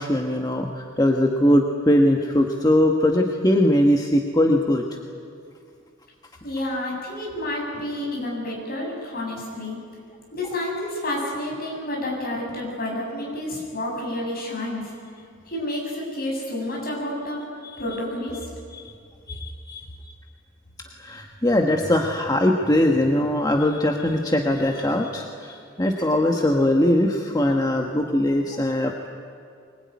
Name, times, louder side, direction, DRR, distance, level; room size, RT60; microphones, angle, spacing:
voice 1, 0.0-4.8 18.7-18.9 19.3-19.8 21.0-29.1, left 1 dB, 20° left, 2 dB, 1.4 m, -21 dB
voice 2, 6.4-9.8 10.3-14.9 15.5-17.4 17.8-18.5, left 1 dB, 50° left, -2 dB, 7.7 m, -29 dB
24.0 x 20.5 x 9.6 m, 2.3 s
head